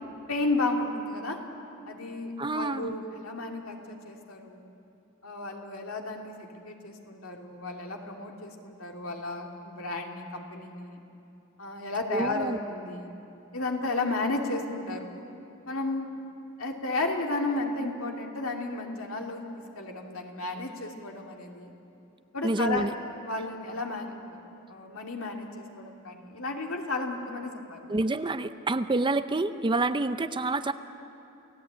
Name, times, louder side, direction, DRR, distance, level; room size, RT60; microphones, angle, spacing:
voice 1, 0.3-1.4 1.8-4.7 5.2-11.0 11.6-13.1 13.5-15.2 15.7-16.1 16.6-21.7 22.3-22.9 23.2-24.4 24.7-27.9, left 2 dB, 65° left, 1 dB, 2.6 m, -33 dB
voice 2, 2.4-2.9 12.1-12.6 22.4-22.9 27.9-30.7, right 2 dB, 20° right, 11 dB, 0.5 m, -28 dB
29.0 x 17.0 x 8.7 m, 2.8 s
head